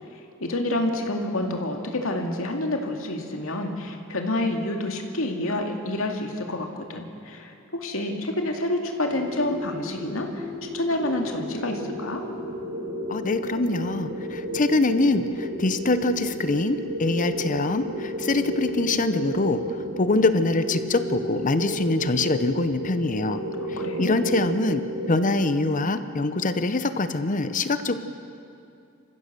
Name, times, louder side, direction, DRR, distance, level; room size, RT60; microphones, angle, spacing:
voice 1, 0.4-10.5 10.7-12.2 23.6-24.2, left 1 dB, 90° left, 3 dB, 2.3 m, -28 dB
sound 1, 9.1-25.6, right 1 dB, 75° right, 2.5 m, -33 dB
voice 2, 13.1-23.4 24.0-24.8 25.1-28.0, left 2 dB, 40° left, 11 dB, 0.8 m, -24 dB
28.5 x 15.5 x 6.8 m, 2.6 s
head